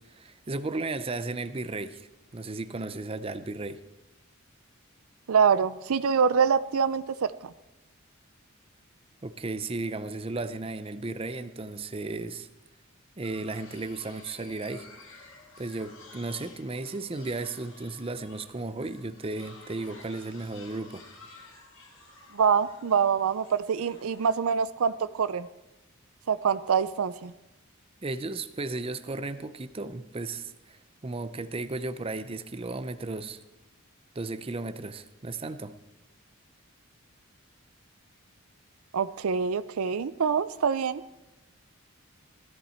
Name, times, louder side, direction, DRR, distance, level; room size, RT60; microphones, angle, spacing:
voice 1, 0.0-3.8 9.2-12.5 13.2-14.9 15.6-21.0 28.0-33.4 34.2-35.8, right 2 dB, 25° right, 11 dB, 0.6 m, -35 dB
voice 2, 5.3-7.5 22.3-25.5 26.3-27.3 38.9-41.0, right 6 dB, 80° right, 15 dB, 0.5 m, -25 dB
sound 1, 13.2-24.6, left 3 dB, 75° left, 3.7 m, -52 dB
16.0 x 13.5 x 4.4 m, 0.98 s
head